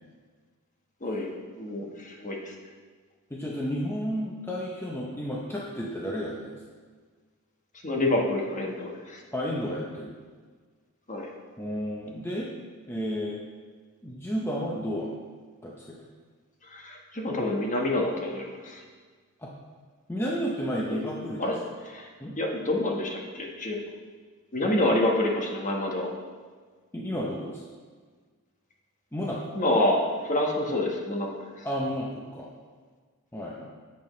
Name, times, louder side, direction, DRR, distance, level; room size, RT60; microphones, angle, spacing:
voice 1, 1.6-2.5 7.8-9.2 11.1-11.3 16.7-18.8 20.9-21.0 21.4-22.1 22.3-23.8 24.5-26.1 29.5-31.3 31.6-31.7, left 1 dB, 35° left, 0 dB, 1.3 m, -27 dB
voice 2, 3.3-6.6 9.3-10.1 11.6-12.5 12.9-13.4 14.0-15.2 15.6-16.0 19.4-19.5 20.1-21.5 22.2-22.4 26.9-27.6 29.1-29.5 31.6-32.5 33.3-33.7, equal, 10° left, -3 dB, 0.7 m, -32 dB
10.5 x 7.6 x 3.2 m, 1.5 s
head